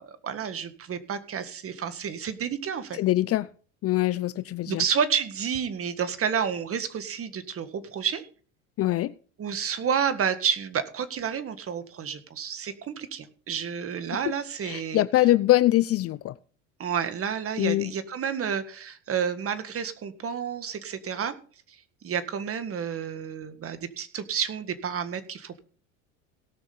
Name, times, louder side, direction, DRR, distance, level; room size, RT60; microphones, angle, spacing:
voice 1, 0.0-3.0 4.7-8.3 9.4-15.0 16.8-21.4 22.0-25.6, right 7 dB, 35° right, 11 dB, 1.7 m, -30 dB
voice 2, 2.9-3.5 3.8-4.8 8.8-9.1 14.6-16.3 17.6-17.9, left 15 dB, 40° left, 18 dB, 0.5 m, -23 dB
17.5 x 6.3 x 5.4 m, 0.42 s
supercardioid pair, 90°, 37 cm